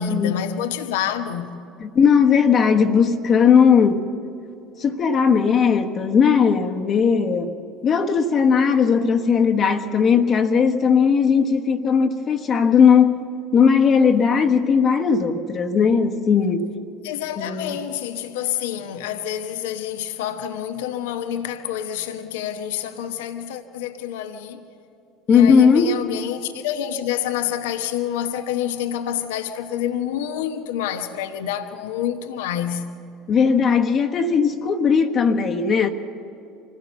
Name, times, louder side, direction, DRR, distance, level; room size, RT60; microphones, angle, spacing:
voice 1, 0.0-1.6 17.0-24.7 25.3-32.9, left 10 dB, 75° left, 1.0 m, -28 dB
voice 2, 1.8-4.1 4.8-7.5 7.8-13.2 13.5-16.7 17.4-17.8 25.3-25.9 33.3-35.9, left 6 dB, 40° left, 1.3 m, -17 dB
25.5 x 16.5 x 7.0 m
hypercardioid pair, 70°, 0 cm